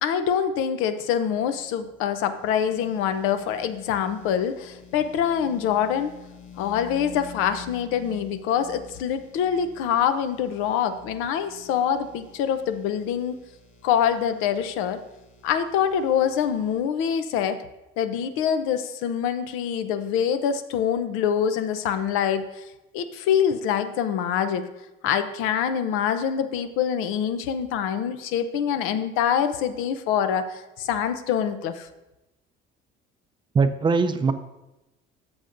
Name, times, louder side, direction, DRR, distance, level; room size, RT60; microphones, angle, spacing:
voice 1, 0.0-6.2 6.6-13.4 13.8-15.0 15.4-17.6 18.0-22.6 22.9-24.7 25.0-31.9, left 8 dB, 85° left, 10 dB, 0.7 m, -25 dB
sound 1, 1.0-16.8, left 6 dB, 35° left, 1.2 m, -48 dB
voice 2, 33.5-34.3, right 4 dB, 25° right, 10 dB, 0.4 m, -21 dB
13.0 x 6.9 x 2.6 m, 0.98 s
cardioid pair, 140°, 21 cm